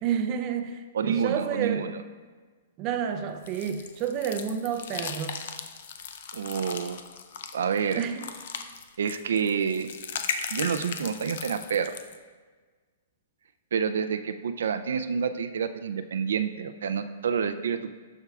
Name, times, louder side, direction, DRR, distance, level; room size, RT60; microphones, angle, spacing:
voice 1, 0.0-1.9 2.8-5.4 8.0-8.3, right 8 dB, 30° right, 6 dB, 0.5 m, -30 dB
voice 2, 0.9-2.0 6.3-7.0 7.5-8.0 9.0-9.9 10.5-11.9 13.7-17.9, right 6 dB, 80° right, 10 dB, 0.4 m, -28 dB
sound 1, 3.5-12.2, left 6 dB, 60° left, 0.5 m, -37 dB
12.5 x 4.6 x 2.4 m, 1.4 s
hypercardioid pair, 155°, 0 cm